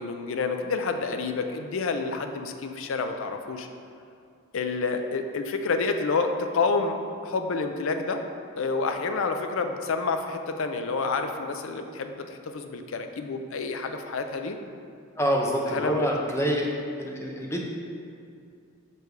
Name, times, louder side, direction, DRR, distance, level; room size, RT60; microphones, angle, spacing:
voice 1, 0.0-3.7 4.5-8.2 8.6-14.6 15.7-16.1, left 4 dB, 65° left, 6 dB, 0.4 m, -29 dB
voice 2, 15.2-16.7 17.0-17.6, equal, 10° left, -1 dB, 0.6 m, -26 dB
6.7 x 3.4 x 4.6 m, 2.4 s
head